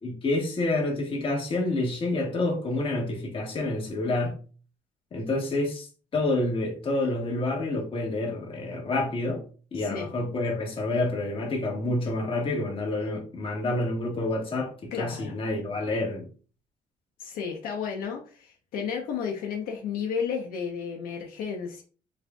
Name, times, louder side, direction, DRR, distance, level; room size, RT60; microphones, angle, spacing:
voice 1, 0.0-4.4 5.1-9.4 9.7-16.3, left 2 dB, 35° left, -1 dB, 1.5 m, -28 dB
voice 2, 9.7-10.1 14.9-15.3 17.2-21.8, left 6 dB, 75° left, -1 dB, 0.8 m, -32 dB
6.5 x 2.6 x 2.3 m, 0.39 s
cardioid pair, 135°, 15 cm